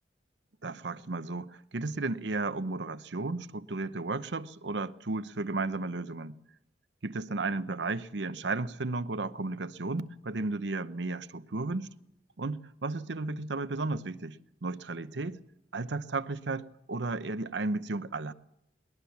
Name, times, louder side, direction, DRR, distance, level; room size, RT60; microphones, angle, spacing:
voice 1, 0.6-6.4 7.0-11.9 12.4-15.4 15.7-18.3, right 3 dB, 80° right, 0.9 m, -34 dB
21.0 x 20.0 x 7.1 m
head